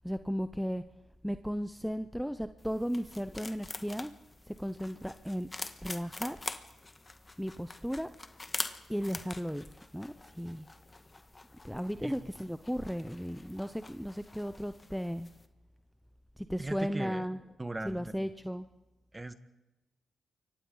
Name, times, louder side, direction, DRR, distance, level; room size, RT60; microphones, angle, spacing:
voice 1, 0.0-0.8 1.2-4.1 4.5-5.5 5.8-6.4 7.4-8.1 8.9-9.7 9.9-10.7 11.6-15.3 16.4-17.4 17.8-18.7, equal, ahead, 10 dB, 0.8 m, -35 dB
sound 1, 2.6-15.5, left 2 dB, 30° left, 1.5 m, -45 dB
voice 2, 16.6-17.2 17.6-18.1 19.1-19.3, right 2 dB, 20° right, 10 dB, 1.6 m, -38 dB
28.5 x 24.0 x 4.0 m, 1.0 s
supercardioid pair, 50°, 0 cm